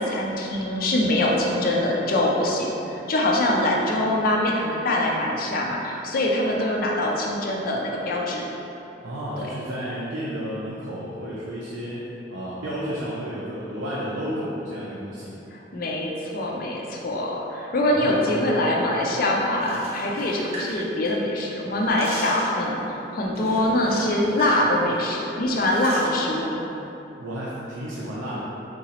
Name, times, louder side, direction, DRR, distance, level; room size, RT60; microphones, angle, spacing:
voice 1, 0.0-8.4 15.5-22.8 23.1-26.7, left 1 dB, 50° left, -2 dB, 0.4 m, -24 dB
voice 2, 9.0-15.3 17.9-18.6 27.2-28.4, equal, 85° right, -7 dB, 0.5 m, -32 dB
sound 1, 19.5-21.4 21.7-22.6 23.4-24.7 24.9-25.1 25.6-26.1, right 1 dB, 35° right, 0.6 m, -36 dB
3.7 x 2.9 x 2.8 m, 2.9 s
head